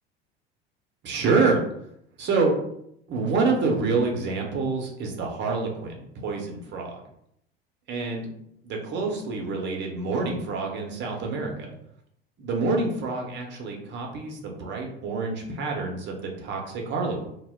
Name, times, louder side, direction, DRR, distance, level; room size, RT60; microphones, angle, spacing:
voice 1, 1.0-1.6 2.2-2.5 3.1-6.9 7.9-8.3 8.6-11.7 12.4-17.3, right 4 dB, 35° right, 1 dB, 0.7 m, -27 dB
2.2 x 2.0 x 3.3 m, 0.74 s
hypercardioid pair, 80°, 31 cm